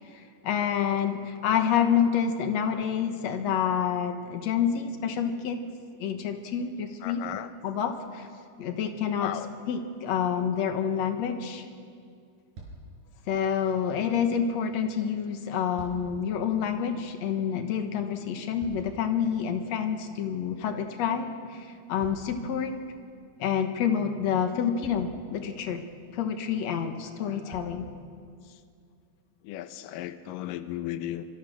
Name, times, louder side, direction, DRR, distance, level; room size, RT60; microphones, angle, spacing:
voice 1, 0.1-5.6 6.0-7.2 7.6-8.3 8.6-9.3 9.7-11.6 13.3-22.7 23.4-25.8 26.1-27.9, left 8 dB, 65° left, 6 dB, 1.8 m, -28 dB
voice 2, 7.0-7.5 9.2-9.5 20.7-20.9 28.5-28.6 29.4-31.3, left 13 dB, 85° left, 10 dB, 1.9 m, -36 dB
sound 1, 12.5-13.0 15.4-16.3 18.1-19.2 22.0-23.0 24.2-24.3 24.8-25.3 26.7-26.8 27.5-27.9 28.7-28.8, right 2 dB, 70° right, 7.3 m, -47 dB
25.5 x 25.0 x 6.6 m, 2.2 s
omnidirectional pair, 4.9 m